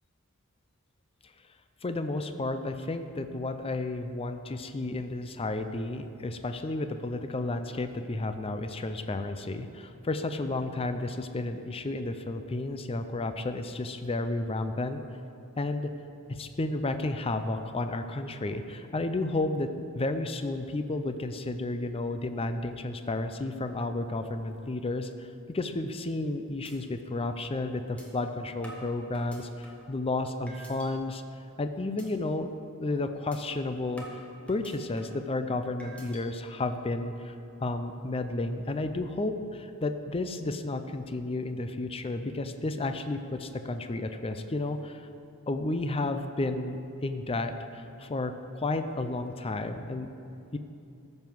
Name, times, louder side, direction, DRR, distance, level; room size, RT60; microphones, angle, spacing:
voice 1, 1.8-15.0 15.6-15.9 16.3-19.7 19.9-25.3 25.5-31.2 31.6-32.5 32.8-34.0 34.5-37.3 37.6-45.0 45.5-50.1 50.5-50.6, left 2 dB, 25° left, 8 dB, 0.5 m, -32 dB
sound 1, 26.0-26.3 26.6-26.7 27.2-27.3 28.0-28.1 28.6-29.9 30.5-30.9 31.3-31.6 32.0-32.1 32.5-32.7 33.3-33.4 34.0-35.2 35.8-36.2, right 1 dB, 5° left, 1.4 m, -48 dB
14.0 x 5.4 x 6.1 m, 2.7 s
head